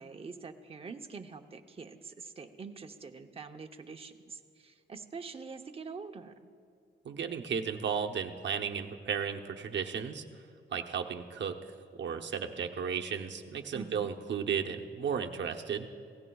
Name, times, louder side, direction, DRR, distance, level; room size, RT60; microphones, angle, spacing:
voice 1, 0.0-6.3 13.7-14.1, right 5 dB, 30° right, 5 dB, 0.7 m, -45 dB
voice 2, 7.0-10.2 10.7-11.5 12.0-15.9, right 7 dB, 65° right, 4 dB, 0.9 m, -34 dB
27.5 x 17.0 x 2.3 m, 2.3 s
wide cardioid pair, 135°, 20 cm